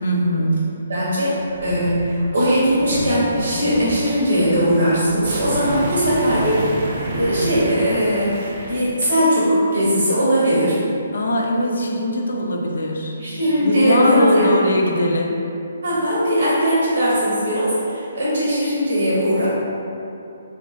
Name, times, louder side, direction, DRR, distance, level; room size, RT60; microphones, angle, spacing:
voice 1, 0.0-0.6 11.1-13.2 13.6-15.4, left 1 dB, 75° left, 1 dB, 0.4 m, -20 dB
voice 2, 0.9-1.4 1.6-6.7 7.1-8.4 8.7-10.8 13.2-14.5 15.8-19.5, equal, 90° right, -8 dB, 0.8 m, -19 dB
sound 1, 1.5-8.9, right 1 dB, 45° right, 0.4 m, -28 dB
2.9 x 2.5 x 2.4 m, 2.7 s
hypercardioid pair, 160°, 0 cm